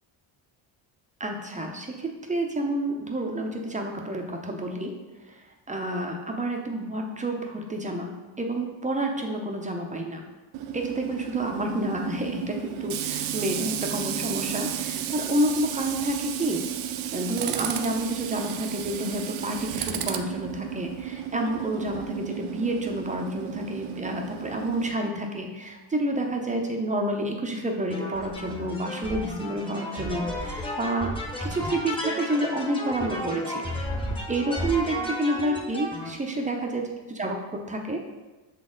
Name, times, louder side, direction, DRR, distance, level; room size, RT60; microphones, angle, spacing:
voice 1, 1.2-4.9 5.7-10.2 10.7-16.7 17.1-31.1 31.4-33.6 34.3-36.8 37.2-38.0, right 1 dB, 15° right, 2 dB, 0.5 m, -29 dB
Tools, 10.5-24.9, right 10 dB, 80° right, 0.6 m, -33 dB
sound 1, 27.9-36.1, equal, 10° left, 0.8 m, -33 dB
6.7 x 4.1 x 3.7 m, 1.2 s
cardioid pair, 140°, 49 cm